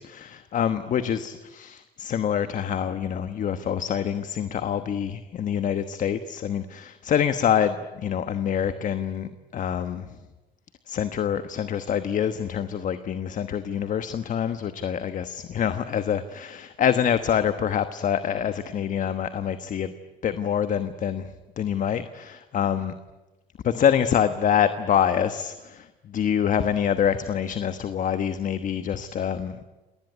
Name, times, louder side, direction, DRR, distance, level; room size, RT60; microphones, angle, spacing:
voice 1, 0.0-10.2 10.9-19.9 20.2-21.3 21.6-22.9 23.6-29.6, left 8 dB, 50° left, 11 dB, 1.2 m, -26 dB
28.0 x 19.5 x 9.6 m, 1.1 s
cardioid pair, 110°, 17 cm